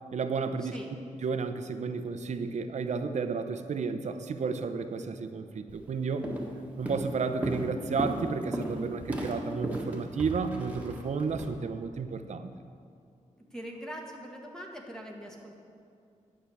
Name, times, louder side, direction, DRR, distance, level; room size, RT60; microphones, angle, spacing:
voice 1, 0.1-0.8 1.2-6.3 6.8-12.5, right 5 dB, 60° right, 8 dB, 0.7 m, -32 dB
Walk footsteps, 5.7-5.9 6.2-6.6 6.9-11.5, right 1 dB, 10° right, 1.5 m, -35 dB
voice 2, 13.4-15.6, equal, 5° left, 0 dB, 1.4 m, -43 dB
10.5 x 6.1 x 8.6 m, 2.4 s
wide cardioid pair, 130°, 13 cm